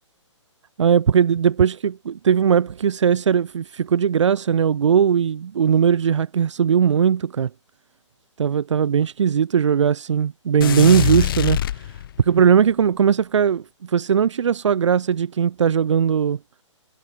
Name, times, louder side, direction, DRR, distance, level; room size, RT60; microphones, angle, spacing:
voice 1, 0.8-7.5 8.4-11.6 12.2-16.4, right 7 dB, 65° right, 1.0 m, -19 dB
sound 1, 10.6-12.4, left 11 dB, 45° left, 3.4 m, -23 dB
hypercardioid pair, 155°, 16 cm